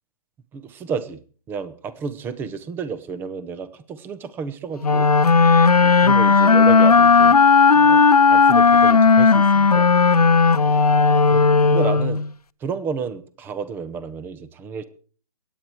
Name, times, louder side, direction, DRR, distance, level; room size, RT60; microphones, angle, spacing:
voice 1, 0.5-1.2 1.5-5.1 5.8-7.4 7.8-9.9 11.3-12.2 12.6-14.8, right 6 dB, 10° right, 13 dB, 0.7 m, -31 dB
sound 1, 4.8-12.3, left 4 dB, 85° left, 0.6 m, -14 dB
23.0 x 9.2 x 4.6 m, 0.42 s
figure-of-eight pair, 135°, 19 cm